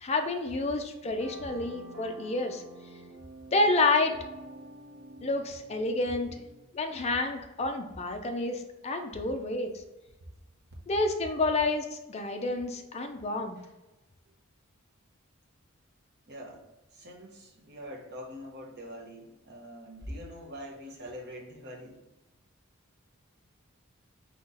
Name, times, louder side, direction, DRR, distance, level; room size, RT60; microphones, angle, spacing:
voice 1, 0.0-2.6 3.5-4.1 5.2-6.3 6.7-9.7 10.9-13.6, left 2 dB, 30° left, 5 dB, 0.4 m, -29 dB
sound 1, 1.0-6.7, right 1 dB, 85° right, 0.8 m, -49 dB
voice 2, 16.3-16.6 16.9-22.0, equal, 50° right, -2 dB, 0.9 m, -44 dB
4.1 x 3.0 x 3.8 m, 1.0 s
head